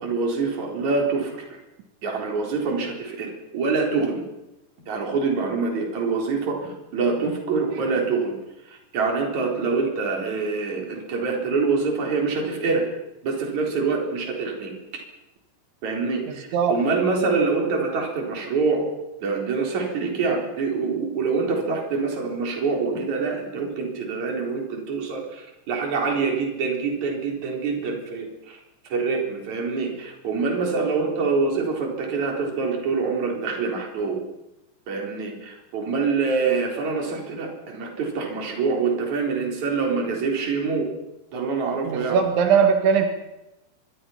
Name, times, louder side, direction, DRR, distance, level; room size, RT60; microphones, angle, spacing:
voice 1, 0.0-1.6 2.0-4.2 4.9-8.4 8.7-12.9 13.2-14.7 15.8-18.9 19.2-28.6 28.8-34.2 34.9-40.9 41.3-42.2, right 4 dB, 40° right, 1 dB, 5.1 m, -25 dB
voice 2, 16.3-16.7 41.9-43.1, right 6 dB, 85° right, 5 dB, 4.3 m, -20 dB
24.5 x 23.0 x 5.8 m, 0.94 s
omnidirectional pair, 5.2 m